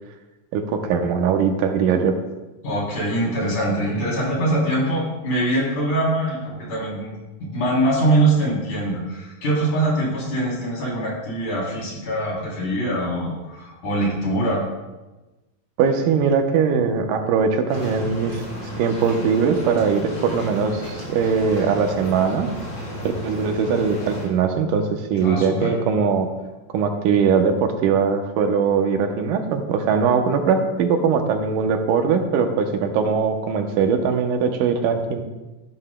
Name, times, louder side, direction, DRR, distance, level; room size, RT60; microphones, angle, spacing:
voice 1, 0.5-2.2 15.8-18.4 18.8-22.5 23.0-26.3 26.7-35.2, right 6 dB, 80° right, 5 dB, 2.4 m, -21 dB
voice 2, 2.6-14.6 25.2-25.7, right 1 dB, 65° left, -4 dB, 4.7 m, -23 dB
sound 1, 17.7-24.3, equal, 45° left, 4.7 m, -33 dB
13.5 x 11.0 x 2.2 m, 1.1 s
omnidirectional pair, 3.8 m